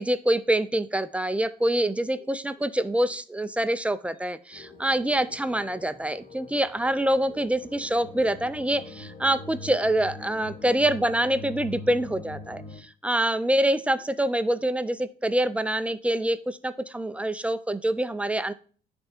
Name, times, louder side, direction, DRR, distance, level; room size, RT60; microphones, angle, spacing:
voice 1, 0.0-18.5, right 1 dB, 5° right, 13 dB, 0.4 m, -26 dB
sound 1, 4.5-12.8, left 3 dB, 30° left, 1.6 m, -43 dB
10.0 x 3.5 x 4.3 m, 0.42 s
cardioid pair, 110°, 17 cm